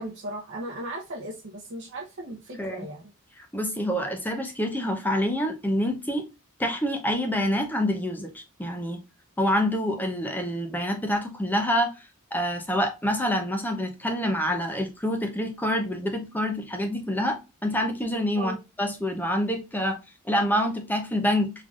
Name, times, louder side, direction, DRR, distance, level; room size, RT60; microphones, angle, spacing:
voice 1, 0.0-3.1 18.3-18.6, right 1 dB, 55° right, 0.8 m, -36 dB
voice 2, 3.4-6.3 6.6-9.0 9.4-17.4 17.6-20.0 20.2-21.5, equal, 10° left, 0.7 m, -27 dB
3.7 x 3.4 x 2.4 m
head